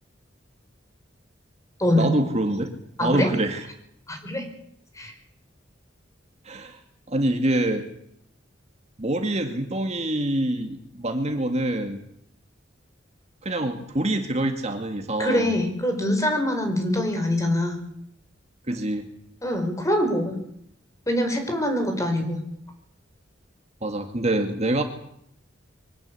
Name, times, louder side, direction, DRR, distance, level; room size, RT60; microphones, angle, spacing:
voice 1, 1.9-2.7 3.0-3.7 6.5-6.8 7.1-7.9 9.0-12.0 13.4-15.5 18.7-19.1 23.8-24.8, right 1 dB, 35° right, 5 dB, 2.1 m, -25 dB
voice 2, 3.0-3.3 4.1-4.5 5.0-5.1 15.2-17.8 19.4-20.4 21.1-22.4, left 1 dB, 15° left, 5 dB, 5.3 m, -24 dB
24.5 x 18.0 x 8.4 m, 0.72 s
head